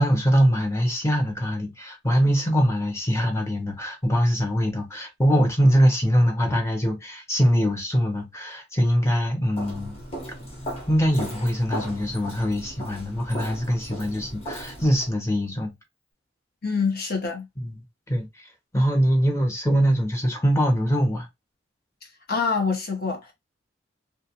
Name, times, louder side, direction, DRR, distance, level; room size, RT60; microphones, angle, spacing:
voice 1, 0.0-10.0 10.9-15.7 17.6-17.8 18.1-18.5 18.7-21.3, equal, 15° left, 0.7 m, -23 dB
Walk footsteps, 9.5-15.1, equal, 30° left, 1.1 m, -36 dB
voice 2, 16.6-17.5 22.3-23.3, left 5 dB, 50° left, 0.9 m, -25 dB
2.4 x 2.3 x 2.8 m
head